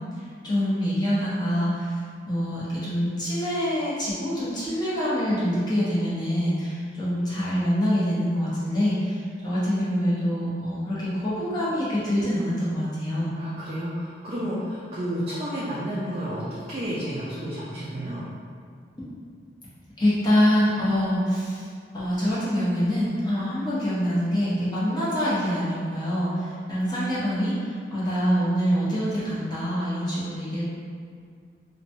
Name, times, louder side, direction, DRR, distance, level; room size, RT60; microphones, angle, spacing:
voice 1, 0.4-1.9 2.3-9.2 9.4-13.3 20.0-21.7 21.9-26.4 26.7-27.5 27.9-30.6, equal, 25° left, -10 dB, 0.7 m, -25 dB
voice 2, 13.4-18.2, equal, 35° right, -8 dB, 0.4 m, -31 dB
2.9 x 2.1 x 2.6 m, 2.1 s
head